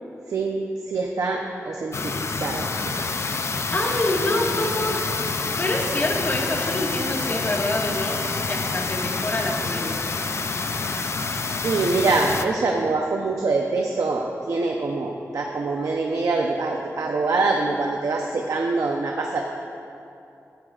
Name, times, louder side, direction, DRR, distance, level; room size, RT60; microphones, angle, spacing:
voice 1, 0.3-3.1 11.6-19.4, right 3 dB, 80° right, 1 dB, 0.8 m, -24 dB
sound 1, 1.9-12.4, left 4 dB, 55° left, 0.5 m, -27 dB
voice 2, 3.7-5.0 5.6-10.0, left 1 dB, 35° left, -1 dB, 1.7 m, -26 dB
16.0 x 12.5 x 2.5 m, 2.7 s
wide cardioid pair, 90°, 6 cm